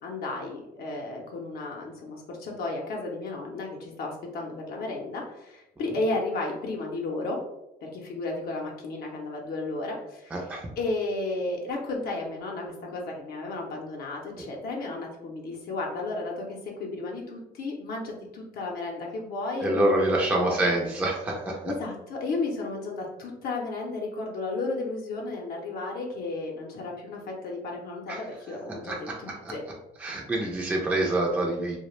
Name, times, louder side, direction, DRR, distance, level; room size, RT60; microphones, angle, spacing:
voice 1, 0.0-7.4 7.8-20.7 21.7-29.6, left 2 dB, 65° left, -1 dB, 0.5 m, -33 dB
voice 2, 10.3-10.7 19.6-21.7 28.1-28.2 28.8-29.5 30.0-31.8, right 1 dB, 10° right, -2 dB, 0.4 m, -26 dB
2.3 x 2.1 x 3.0 m, 0.92 s
cardioid pair, 110°, 17 cm